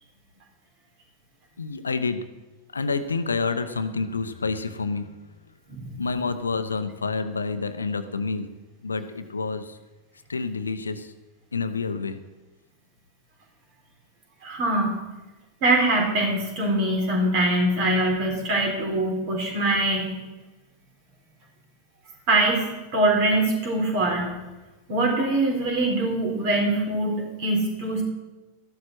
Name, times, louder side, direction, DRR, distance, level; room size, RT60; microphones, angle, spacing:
voice 1, 1.6-2.2 2.7-5.1 6.0-8.5 8.8-9.8 10.3-11.1 11.5-12.2, left 4 dB, 75° left, 10 dB, 0.8 m, -28 dB
voice 2, 14.4-14.9 15.6-20.1 22.3-22.7 22.9-24.3 24.9-28.0, right 2 dB, 45° right, 1 dB, 3.9 m, -23 dB
13.0 x 12.0 x 4.5 m, 1.1 s
figure-of-eight pair, 90°, 0 cm